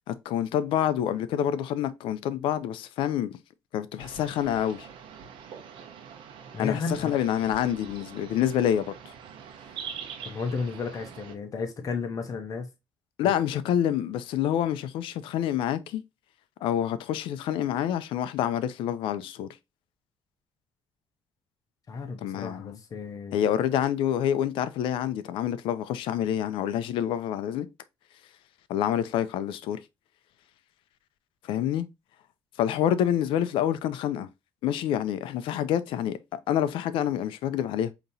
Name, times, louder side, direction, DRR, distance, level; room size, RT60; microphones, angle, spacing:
voice 1, 0.1-3.3 3.7-4.9 6.6-8.9 13.2-16.0 16.6-19.5 22.2-22.8 23.3-27.7 28.7-29.8 31.4-31.9 32.6-34.3 34.6-37.9, left 10 dB, 85° left, 0.5 m, -27 dB
sound 1, 4.0-11.3, right 7 dB, 80° right, 0.9 m, -44 dB
voice 2, 6.5-7.1 10.2-12.7 13.2-13.3 21.9-23.5, left 4 dB, 45° left, 0.9 m, -33 dB
5.1 x 2.9 x 2.7 m
cardioid pair, 110°, 9 cm